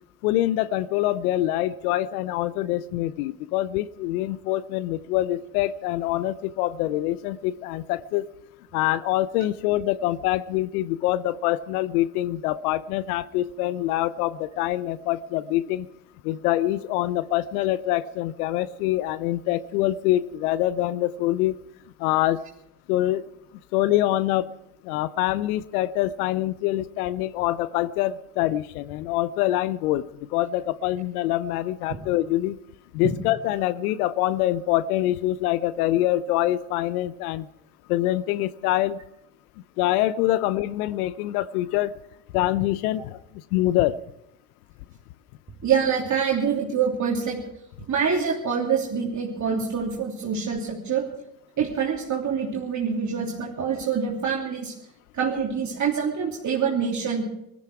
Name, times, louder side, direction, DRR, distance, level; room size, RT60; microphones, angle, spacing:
voice 1, 0.2-8.3 8.7-15.9 16.2-21.6 22.0-22.4 22.9-23.3 23.7-24.5 24.8-32.6 32.9-37.5 37.9-39.0 39.8-41.9 42.3-43.2 43.5-44.0, left 14 dB, 70° left, 18 dB, 0.7 m, -25 dB
voice 2, 45.6-47.4 47.9-51.1 51.6-54.7 55.1-57.2, right 6 dB, 40° right, -2 dB, 3.1 m, -25 dB
20.0 x 13.5 x 4.8 m, 0.83 s
hypercardioid pair, 70°, 46 cm